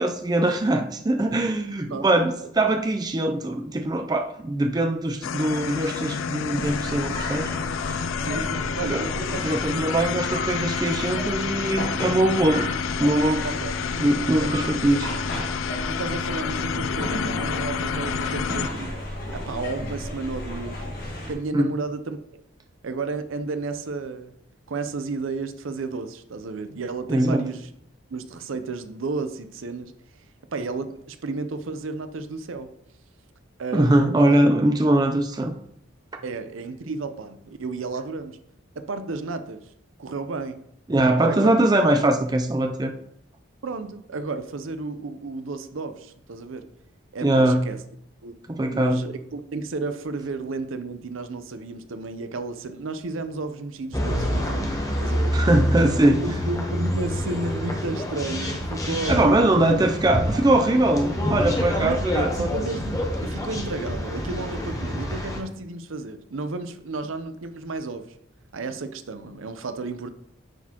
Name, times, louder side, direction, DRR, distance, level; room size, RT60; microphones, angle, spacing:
voice 1, 0.0-7.5 8.9-9.1 9.4-12.7 13.0-13.5 14.0-15.1 21.5-21.7 27.1-27.4 33.7-35.5 40.9-42.9 47.2-47.7 48.5-49.0 55.3-56.3 59.1-62.5, right 1 dB, 20° right, 6 dB, 0.4 m, -21 dB
voice 2, 1.9-2.5 8.2-10.2 13.4-13.7 14.4-14.7 15.9-19.0 19.3-22.4 22.8-24.3 24.7-27.7 28.1-29.9 30.5-32.7 33.6-34.4 36.2-38.4 38.8-39.7 40.0-40.6 41.3-41.6 43.6-46.7 47.1-47.8 48.2-48.4 48.7-55.3 56.2-59.6 60.3-60.4 61.8-68.1 68.5-70.1, right 3 dB, 80° right, 10 dB, 0.6 m, -32 dB
sound 1, 5.2-18.7, left 7 dB, 75° left, 0.3 m, -29 dB
sound 2, 6.5-21.3, left 1 dB, 45° left, 1.5 m, -33 dB
sound 3, 53.9-65.4, equal, 15° left, 0.8 m, -27 dB
9.0 x 4.1 x 2.9 m, 0.72 s
head